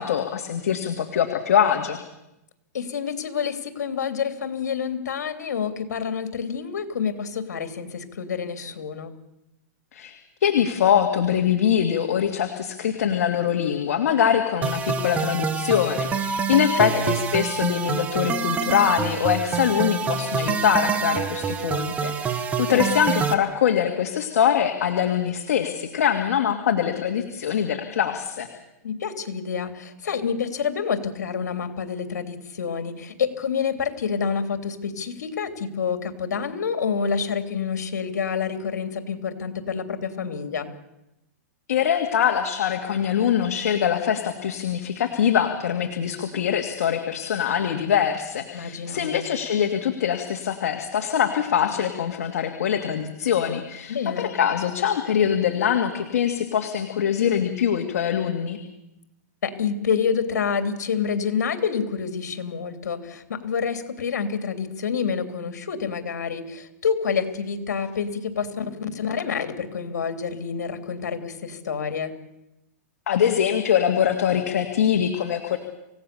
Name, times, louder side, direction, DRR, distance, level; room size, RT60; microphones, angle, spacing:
voice 1, 0.0-2.0 9.9-28.5 41.7-58.6 73.1-75.6, left 9 dB, 70° left, 4 dB, 2.3 m, -23 dB
voice 2, 2.7-9.1 16.8-17.1 22.6-22.9 28.8-40.7 48.5-49.2 53.9-54.4 59.4-72.1, left 6 dB, 85° left, 7 dB, 3.1 m, -28 dB
sound 1, 14.6-23.3, right 6 dB, 15° right, 1.5 m, -26 dB
28.0 x 17.0 x 6.9 m, 0.89 s
hypercardioid pair, 155°, 9 cm